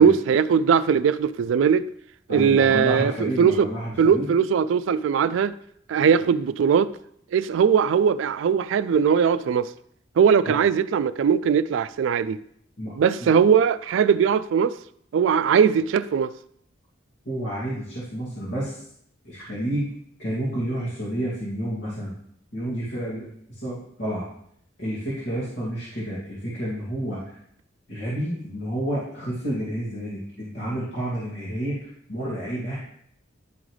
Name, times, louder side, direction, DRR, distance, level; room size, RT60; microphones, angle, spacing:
voice 1, 0.0-1.9 2.3-3.7 4.0-5.5 5.9-6.9 7.3-9.7 10.2-12.4 13.0-14.7 15.1-16.3, right 7 dB, 75° right, 0.3 m, -20 dB
voice 2, 2.3-4.3 10.5-10.6 12.8-12.9 13.2-13.3 17.2-18.8 19.2-19.9 20.2-22.2 22.5-24.3 24.8-27.4 27.9-33.0, right 1 dB, 70° left, 2.3 m, -30 dB
10.5 x 3.9 x 3.2 m
head